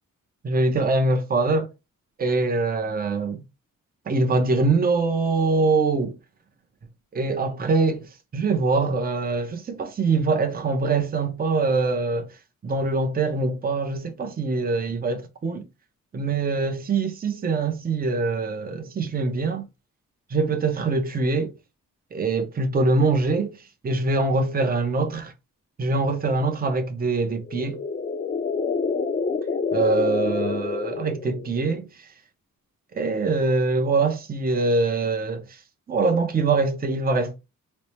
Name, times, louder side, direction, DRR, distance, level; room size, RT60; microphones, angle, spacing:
voice 1, 0.4-1.7 2.2-3.4 4.1-6.2 7.1-8.1 8.3-12.3 12.6-15.6 16.1-19.7 20.3-21.5 22.1-25.3 25.8-27.8 29.7-32.1 32.9-35.6 35.9-37.4, right 3 dB, 30° right, 0.6 m, -23 dB
sound 1, 27.3-31.6, left 5 dB, 30° left, 0.5 m, -27 dB
4.2 x 2.1 x 3.1 m
wide cardioid pair, 130°, 32 cm